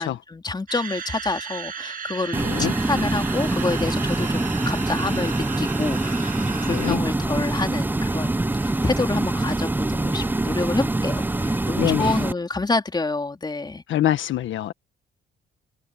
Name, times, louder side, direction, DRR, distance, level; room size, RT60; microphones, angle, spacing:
voice 1, 0.0-6.4 6.6-13.8, left 3 dB, 20° left, 3.7 m, -28 dB
sound 1, 0.7-7.0, right 6 dB, 45° right, 1.9 m, -35 dB
sound 2, 2.3-12.3, right 2 dB, 10° right, 0.6 m, -24 dB
voice 2, 2.4-2.7 6.7-7.0 11.8-12.2 13.9-14.7, left 12 dB, 75° left, 1.5 m, -25 dB
open air
cardioid pair, 90°, 20 cm